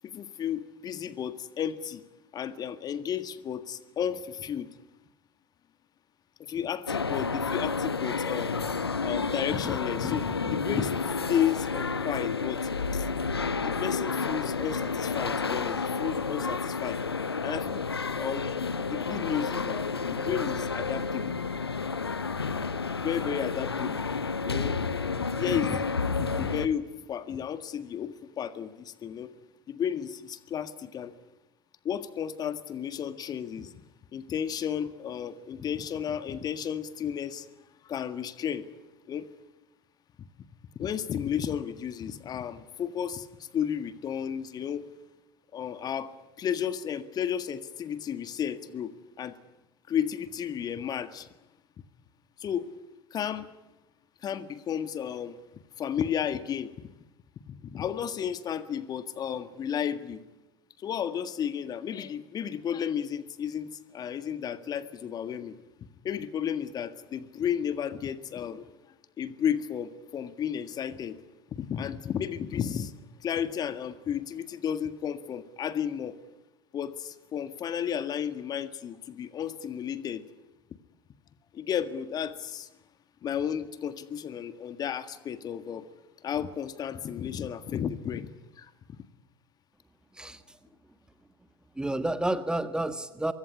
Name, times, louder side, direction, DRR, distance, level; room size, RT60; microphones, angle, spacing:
voice 1, 0.0-2.0 2.3-4.7 6.4-8.5 9.0-11.0 11.3-13.1 13.6-17.0 17.4-17.8 18.2-21.4 23.0-24.1 24.4-24.8 25.2-29.3 29.7-31.1 31.9-33.7 34.1-37.5 37.8-38.7 39.1-39.3 40.8-44.9 45.5-46.1 46.4-48.9 49.2-49.3 49.9-51.3 52.4-52.7 53.1-53.5 54.2-55.4 55.8-56.7 57.5-60.2 60.8-65.6 66.0-68.7 69.2-71.2 71.5-72.9 73.2-76.2 76.7-80.2 81.5-82.7 83.2-85.9 86.2-88.3 88.6-88.7, left 8 dB, 30° left, 12 dB, 1.7 m, -33 dB
sound 1, 6.9-26.7, left 4 dB, 80° left, 1.2 m, -30 dB
voice 2, 90.1-90.6 91.7-93.3, right 1 dB, 5° right, 11 dB, 1.5 m, -30 dB
24.5 x 23.0 x 10.0 m, 1.0 s
figure-of-eight pair, 75°, 13 cm